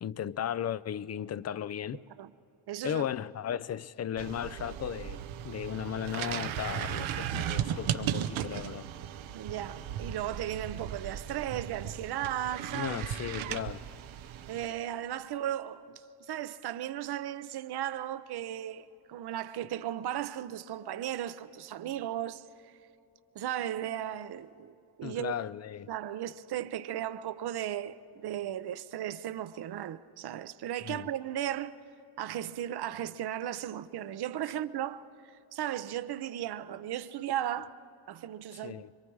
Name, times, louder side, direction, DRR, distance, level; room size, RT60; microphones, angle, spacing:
voice 1, 0.0-2.0 2.8-8.9 12.7-13.9 25.0-25.9 30.8-31.1 38.5-38.9, left 9 dB, 35° left, 0.5 m, -36 dB
voice 2, 2.7-3.0 9.3-13.0 14.5-22.7 23.3-25.3 25.9-31.7 32.2-37.8 38.1-38.8, right 11 dB, 55° right, 0.8 m, -36 dB
sound 1, 4.2-14.7, right 10 dB, 85° right, 0.9 m, -36 dB
26.5 x 23.5 x 4.7 m
cardioid pair, 120°, 46 cm